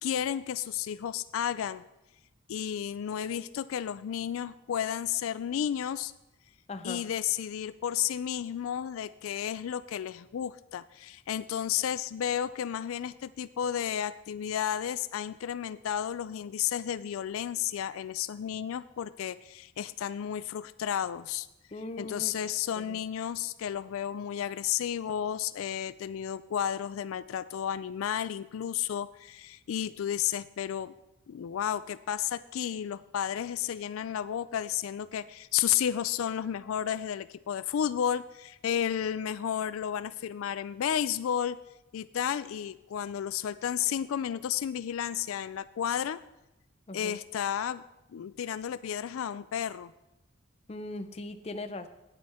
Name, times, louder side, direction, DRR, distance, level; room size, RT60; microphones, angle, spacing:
voice 1, 0.0-1.8 2.5-6.1 6.8-21.5 22.0-30.9 31.3-41.6 41.9-46.2 46.9-47.8 48.1-49.9, left 9 dB, 85° left, 15 dB, 0.3 m, -32 dB
voice 2, 6.7-7.0 21.7-22.3 22.7-23.0 46.9-47.2 50.7-51.9, left 2 dB, 30° left, 9 dB, 0.5 m, -39 dB
9.3 x 8.9 x 4.3 m, 0.93 s
head